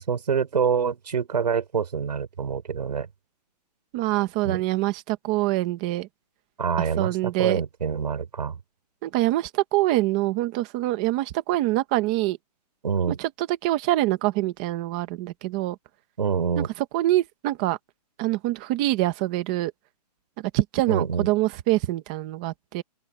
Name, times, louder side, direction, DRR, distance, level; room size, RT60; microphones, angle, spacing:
voice 1, 0.1-3.1 4.4-4.6 6.6-8.6 12.8-13.2 16.2-16.7 20.9-21.3, right 6 dB, 75° right, 3.9 m, -26 dB
voice 2, 3.9-6.1 6.8-7.6 9.0-12.4 13.2-15.8 16.6-16.7 16.9-17.8 18.2-19.7 20.4-22.8, right 16 dB, 10° right, 0.6 m, -25 dB
open air
hypercardioid pair, 180°, 21 cm